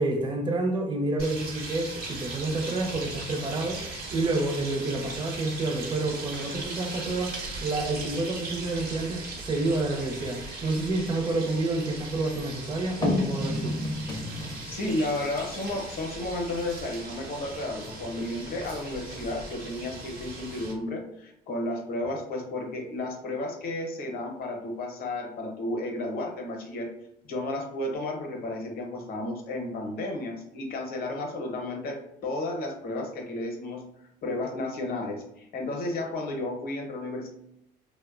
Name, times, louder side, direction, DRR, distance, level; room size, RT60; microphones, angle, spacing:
voice 1, 0.0-13.7, right 2 dB, 30° right, 3 dB, 0.5 m, -29 dB
sound 1, 1.2-20.7, right 2 dB, 65° right, 0.8 m, -39 dB
sound 2, 2.0-2.3 2.6-4.4 4.8-5.2 5.7-5.8 6.2-8.0 9.6-11.5 12.8-15.1 15.4-15.5, left 2 dB, 25° left, 0.4 m, -34 dB
voice 2, 14.7-26.9 27.3-33.8 34.2-37.3, left 2 dB, 65° left, 2 dB, 0.7 m, -33 dB
2.6 x 2.1 x 2.4 m, 0.79 s
cardioid pair, 110°, 17 cm